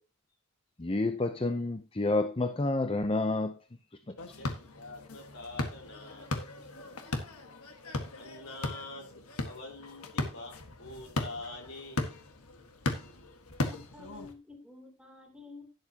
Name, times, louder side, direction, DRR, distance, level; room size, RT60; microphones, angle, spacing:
voice 1, 0.8-3.6 4.1-4.3, left 2 dB, 25° left, 0.6 m, -29 dB
voice 2, 4.1-6.3 6.6-7.1 8.1-12.0, left 2 dB, 65° left, 4.4 m, -46 dB
sound 1, 4.2-14.3, left 2 dB, 85° left, 1.6 m, -37 dB
voice 3, 13.6-15.6, left 3 dB, 5° right, 3.0 m, -50 dB
11.5 x 10.5 x 2.9 m
head